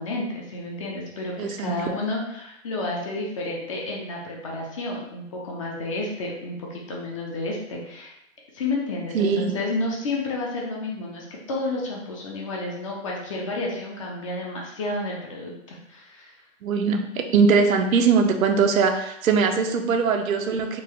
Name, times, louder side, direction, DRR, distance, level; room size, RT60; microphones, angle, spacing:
voice 1, 0.0-8.1 8.5-16.3, left 2 dB, 25° left, -2 dB, 0.4 m, -31 dB
voice 2, 1.4-1.7 9.1-9.5 16.6-20.8, right 5 dB, 85° right, 5 dB, 0.7 m, -21 dB
3.7 x 2.2 x 3.0 m, 0.81 s
hypercardioid pair, 140°, 40 cm